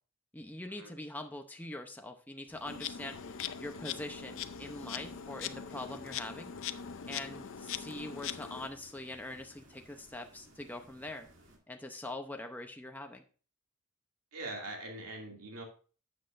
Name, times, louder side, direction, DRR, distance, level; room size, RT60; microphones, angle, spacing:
voice 1, 0.3-3.2 3.6-6.5 7.1-11.3 11.7-13.2, left 1 dB, 10° left, 4 dB, 0.7 m, -43 dB
sound 1, 2.5-11.6, right 1 dB, 60° right, 2.2 m, -60 dB
Insect, 2.7-8.7, left 8 dB, 60° left, 0.6 m, -41 dB
voice 2, 14.3-15.6, right 2 dB, 80° right, 1 dB, 2.4 m, -42 dB
12.0 x 7.8 x 2.5 m, 0.38 s
head